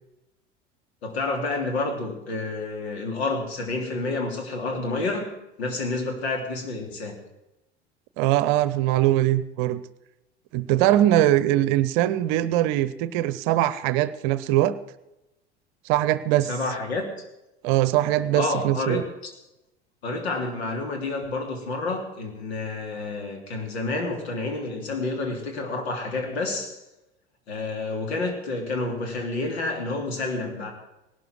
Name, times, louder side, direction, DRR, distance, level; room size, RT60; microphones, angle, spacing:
voice 1, 1.0-7.1 16.5-17.1 18.3-19.0 20.0-26.8 27.5-30.7, left 3 dB, 70° left, 3 dB, 3.2 m, -29 dB
voice 2, 8.2-9.8 10.5-14.8 15.8-16.5 17.6-19.0, right 14 dB, 50° right, 16 dB, 0.9 m, -22 dB
18.5 x 12.0 x 4.7 m, 0.94 s
figure-of-eight pair, 75°, 34 cm